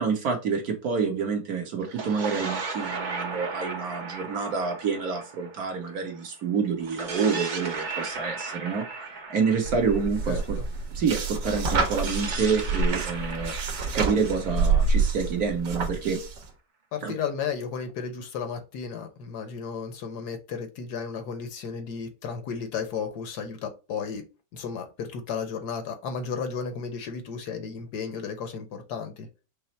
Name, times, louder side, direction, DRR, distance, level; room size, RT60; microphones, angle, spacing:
voice 1, 0.0-8.9 9.1-10.6 10.9-16.2 17.0-17.1, right 5 dB, 60° right, 1.6 m, -28 dB
sound 1, 1.8-6.2 6.8-10.7 11.8-15.6, right 4 dB, 45° right, 0.6 m, -36 dB
sound 2, 9.6-16.5, right 4 dB, 75° right, 1.8 m, -27 dB
voice 2, 10.3-10.7 16.9-24.2 24.5-29.3, left 6 dB, 70° left, 1.3 m, -34 dB
5.5 x 2.0 x 4.2 m
omnidirectional pair, 1.9 m